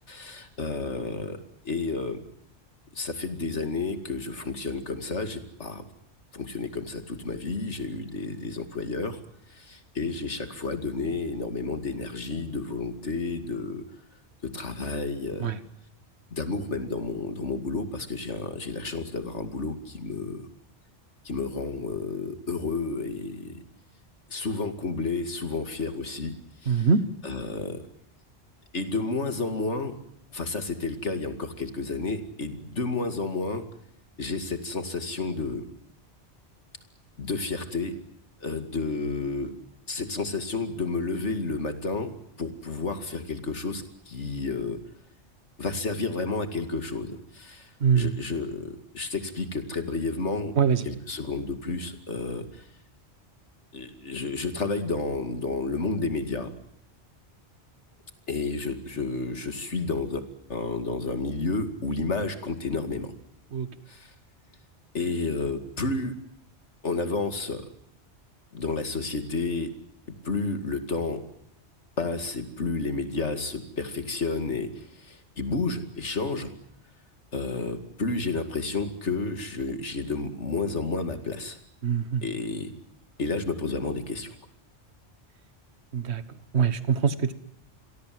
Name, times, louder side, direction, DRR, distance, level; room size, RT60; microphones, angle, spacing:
voice 1, 0.1-1.4 1.6-2.2 2.9-5.8 6.3-9.2 9.5-13.8 14.4-15.5 16.3-20.5 21.2-23.6 24.3-26.3 26.6-26.8 27.2-27.8 28.7-29.9 30.3-33.6 34.2-35.6 37.2-37.9 38.4-39.5 39.9-44.8 45.6-47.7 47.9-50.5 50.8-52.6 53.7-56.5 58.3-60.2 60.5-63.1 63.9-64.1 64.9-66.1 66.8-67.6 68.5-69.7 70.2-71.2 72.0-76.5 77.3-81.6 82.2-82.7 83.2-84.4, left 3 dB, 75° left, 8 dB, 2.7 m, -31 dB
voice 2, 26.6-27.0 47.8-48.1 50.6-50.9 63.5-63.7 81.8-82.3 85.9-87.3, right 6 dB, 65° right, 13 dB, 1.6 m, -24 dB
28.5 x 22.5 x 7.8 m, 0.74 s
omnidirectional pair, 1.2 m